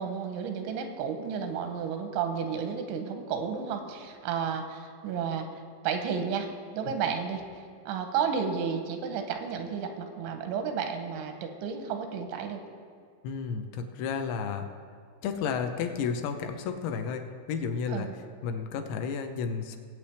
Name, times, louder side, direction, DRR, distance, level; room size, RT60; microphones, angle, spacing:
voice 1, 0.0-5.5 5.8-6.5 6.7-7.4 7.9-12.6 17.9-18.1, right 6 dB, 90° right, 5 dB, 3.2 m, -32 dB
voice 2, 13.2-14.7 15.2-18.1 18.4-19.8, left 6 dB, 80° left, 6 dB, 2.8 m, -32 dB
19.5 x 8.3 x 3.4 m, 2.2 s
omnidirectional pair, 5.3 m